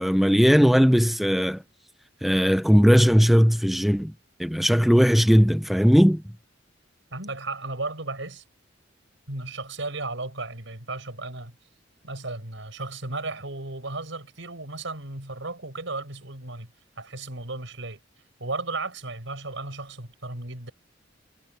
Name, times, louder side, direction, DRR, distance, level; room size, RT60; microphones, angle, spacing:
voice 1, 0.0-1.6 2.2-4.1 4.4-6.2, equal, ahead, 0.5 m, -18 dB
voice 2, 7.1-8.4 9.3-11.6 12.0-16.7 17.0-18.0 18.4-20.7, right 2 dB, 75° right, 5.3 m, -34 dB
head